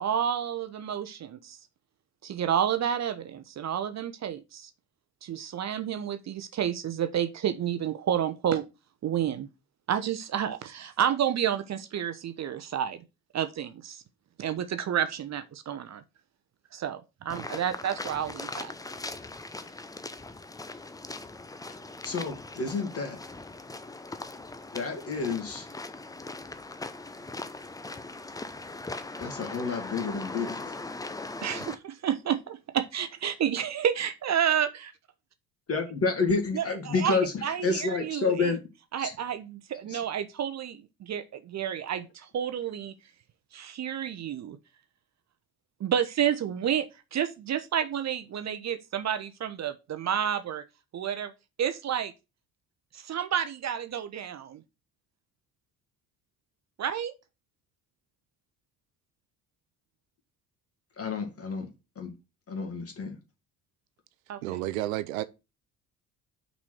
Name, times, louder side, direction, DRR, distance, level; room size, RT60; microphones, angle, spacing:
voice 1, 0.0-1.6 2.2-4.7 5.2-8.6 9.0-9.5 9.9-13.0 13.3-14.0 14.4-16.0 16.7-18.7 31.4-34.9 36.5-38.5 38.9-42.9 43.5-44.6 45.8-50.6 50.9-51.3 51.6-52.1 52.9-54.6 56.8-57.1 64.3-64.4, right 9 dB, 40° right, 0.9 m, -30 dB
sound 1, 17.3-31.7, left 2 dB, 10° left, 0.7 m, -40 dB
voice 2, 22.0-23.2 24.7-25.7 29.2-30.8 35.7-38.6 39.0-39.1 39.9-40.0 61.0-61.7 62.0-62.1 62.5-63.2, left 4 dB, 35° left, 2.4 m, -29 dB
voice 3, 64.4-65.2, right 15 dB, 75° right, 0.6 m, -31 dB
5.8 x 4.2 x 6.2 m
hypercardioid pair, 55°, 41 cm